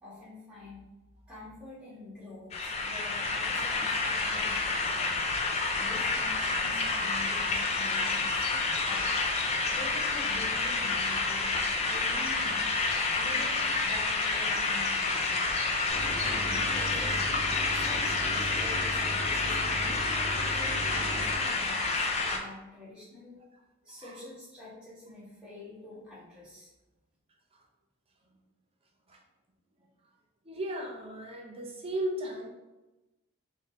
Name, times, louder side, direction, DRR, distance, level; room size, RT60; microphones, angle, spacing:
voice 1, 0.0-0.8 1.3-5.0 5.7-9.2 9.7-11.5 11.8-12.6 13.1-15.7 16.1-17.2 17.7-20.0 20.5-23.4 23.8-26.7, left 2 dB, 5° right, -9 dB, 1.4 m, -46 dB
sound 1, 2.5-22.4, left 3 dB, 30° left, 0.4 m, -29 dB
Mechanisms, 15.9-21.4, equal, 65° left, 1.0 m, -38 dB
voice 2, 30.4-32.5, right 1 dB, 25° right, 0 dB, 0.6 m, -36 dB
3.6 x 2.7 x 3.6 m, 1.1 s
head